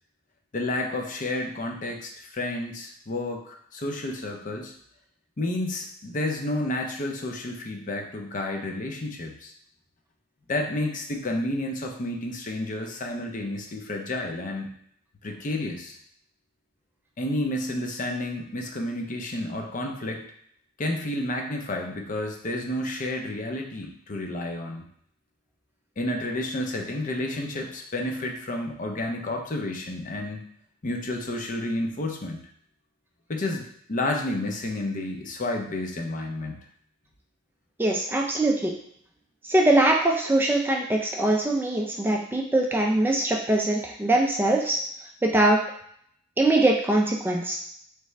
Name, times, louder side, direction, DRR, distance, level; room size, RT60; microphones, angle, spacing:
voice 1, 0.5-4.7 5.4-9.5 10.5-14.7 15.2-16.0 17.2-20.3 20.8-24.8 26.0-30.5 30.8-32.4 33.3-36.7, left 1 dB, 40° left, 3 dB, 0.6 m, -30 dB
voice 2, 37.8-38.7 39.4-44.8 45.2-45.6 46.4-47.6, right 2 dB, 10° right, 0 dB, 0.3 m, -22 dB
3.6 x 3.3 x 3.2 m, 0.67 s
head